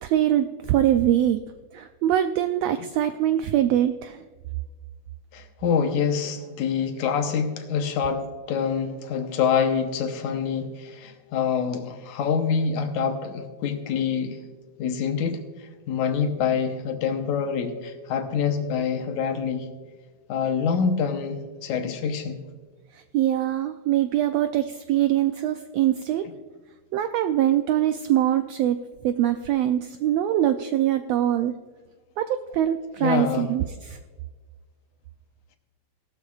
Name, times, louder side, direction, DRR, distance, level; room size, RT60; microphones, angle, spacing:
voice 1, 0.0-1.4 1.7-4.2 23.1-26.2 26.9-28.8 29.0-31.5 32.2-32.3 32.5-34.0, right 12 dB, 80° right, 8 dB, 1.5 m, -23 dB
voice 2, 5.3-14.4 14.8-15.4 15.9-19.7 20.3-22.4 33.0-33.5, left 6 dB, 80° left, 6 dB, 2.3 m, -26 dB
17.0 x 13.0 x 2.4 m, 1.4 s
omnidirectional pair, 3.4 m